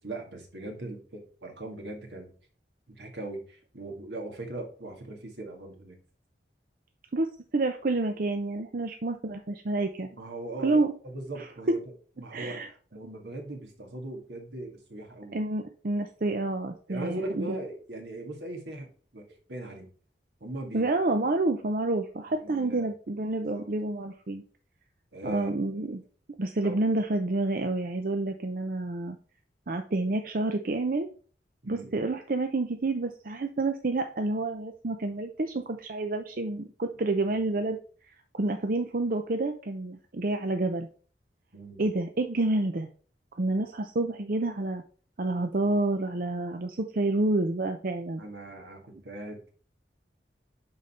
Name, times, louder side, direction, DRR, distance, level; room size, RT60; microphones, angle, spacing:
voice 1, 0.0-2.3 2.9-6.0 10.1-15.4 16.9-18.9 19.1-19.9 20.4-20.9 22.4-22.9 23.4-23.7 25.1-25.5 26.6-26.8 31.6-32.0 41.5-41.8 48.2-49.5, right 2 dB, 80° right, 3 dB, 2.0 m, -39 dB
voice 2, 7.1-10.1 10.6-10.9 11.4-11.8 12.3-12.7 15.3-17.5 20.7-24.4 25.2-26.0 26.4-29.2 29.7-31.1 31.7-37.8 38.3-40.9 41.8-42.9 43.4-44.8 45.2-48.2, right 2 dB, 50° right, 6 dB, 0.6 m, -29 dB
10.5 x 4.0 x 4.2 m, 0.42 s
head